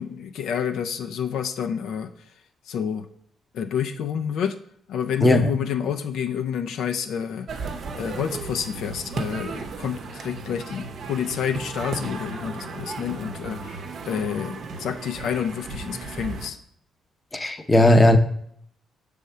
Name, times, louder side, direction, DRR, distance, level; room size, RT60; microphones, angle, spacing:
voice 1, 0.0-2.1 2.7-3.1 3.5-4.5 4.9-7.5 8.0-16.6, left 8 dB, 75° left, 0.5 m, -29 dB
sound 1, 7.5-16.5, right 4 dB, 60° right, 0.7 m, -35 dB
voice 2, 17.3-18.2, left 1 dB, 15° left, 0.7 m, -16 dB
6.4 x 3.5 x 5.4 m
cardioid pair, 90°, 0 cm